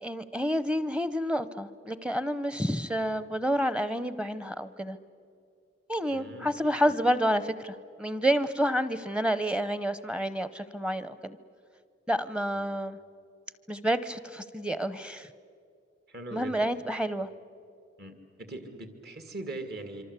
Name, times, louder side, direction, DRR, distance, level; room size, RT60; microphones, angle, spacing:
voice 1, 0.0-5.0 5.9-11.4 12.1-13.0 13.7-15.3 16.3-17.3, equal, 5° right, 14 dB, 0.7 m, -29 dB
voice 2, 6.1-6.5 6.8-6.9 12.5-12.7 16.1-16.7 18.0-20.0, right 2 dB, 55° right, 7 dB, 2.4 m, -41 dB
26.0 x 25.0 x 8.2 m, 2.4 s
head